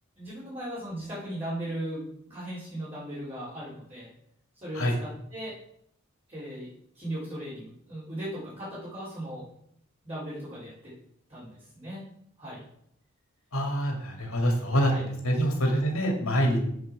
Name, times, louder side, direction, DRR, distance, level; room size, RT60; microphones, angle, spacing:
voice 1, 0.2-4.1 4.6-5.5 6.3-6.7 6.9-9.4 10.0-10.9 11.3-12.1 12.4-12.6 14.8-15.0, right 1 dB, 30° right, -11 dB, 4.0 m, -37 dB
voice 2, 13.5-16.6, equal, 80° left, 2 dB, 2.5 m, -26 dB
7.8 x 6.1 x 6.0 m, 0.70 s
head